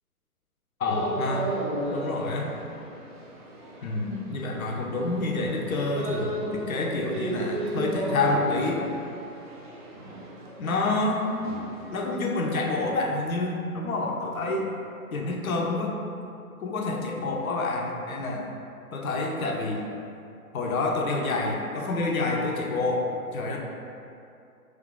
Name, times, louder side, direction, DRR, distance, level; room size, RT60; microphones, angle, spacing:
voice 1, 0.8-1.5 1.9-2.5 3.8-8.8 10.6-11.2 11.9-14.7 15.1-15.9 16.6-18.5 18.9-19.8 20.5-23.6, left 2 dB, 65° left, 0 dB, 0.7 m, -28 dB
sound 1, 0.8-12.9, right 1 dB, 35° right, 0.4 m, -34 dB
2.7 x 2.4 x 3.7 m, 2.5 s
figure-of-eight pair, 135°, 45 cm